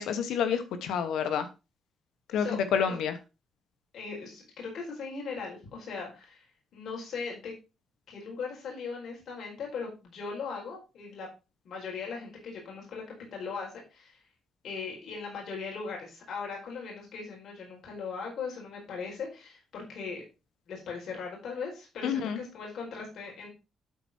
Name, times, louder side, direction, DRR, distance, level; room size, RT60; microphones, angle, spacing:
voice 1, 0.0-1.5 2.3-3.2 22.0-22.4, left 7 dB, 85° left, 9 dB, 1.1 m, -28 dB
voice 2, 3.9-6.4 6.7-7.5 8.1-11.3 11.6-13.0 13.3-14.2 14.6-20.2 20.7-23.5, left 5 dB, 65° left, -2 dB, 4.9 m, -39 dB
12.0 x 4.7 x 4.4 m, 0.29 s
cardioid pair, 115°, 0 cm